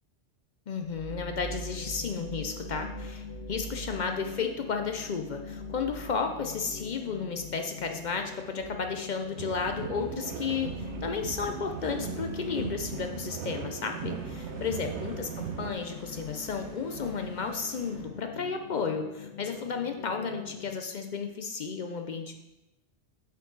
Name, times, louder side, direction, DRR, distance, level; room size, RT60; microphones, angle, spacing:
voice 1, 0.7-22.3, left 5 dB, 55° left, 5 dB, 0.5 m, -33 dB
sound 1, 0.8-18.9, right 5 dB, 30° left, 1.6 m, -47 dB
sound 2, 1.1-20.8, left 8 dB, 75° left, 0.9 m, -45 dB
sound 3, 9.4-15.7, right 8 dB, 70° right, 0.8 m, -38 dB
7.7 x 4.5 x 3.9 m, 0.95 s
omnidirectional pair, 1.2 m